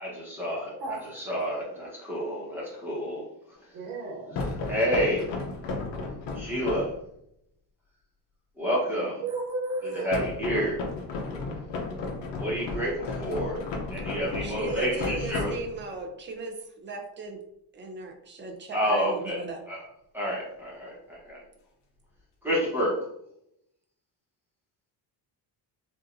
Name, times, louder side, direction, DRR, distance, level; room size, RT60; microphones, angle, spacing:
voice 1, 0.0-0.7 1.1-3.3 4.7-5.3 6.3-6.9 8.6-9.2 10.0-10.8 12.4-13.6 13.9-15.5 18.7-19.4 19.7-19.8 20.1-21.4 22.4-23.0, equal, 5° right, -7 dB, 1.1 m, -29 dB
voice 2, 0.8-1.2 3.7-4.4 9.2-10.2, right 3 dB, 65° right, -4 dB, 1.3 m, -33 dB
sound 1, 4.3-7.0 10.1-16.0, left 3 dB, 75° left, 0.8 m, -34 dB
voice 3, 14.4-17.4 17.7-19.6, right 2 dB, 25° right, 4 dB, 0.5 m, -37 dB
4.8 x 2.6 x 2.6 m, 0.77 s
cardioid pair, 180°, 42 cm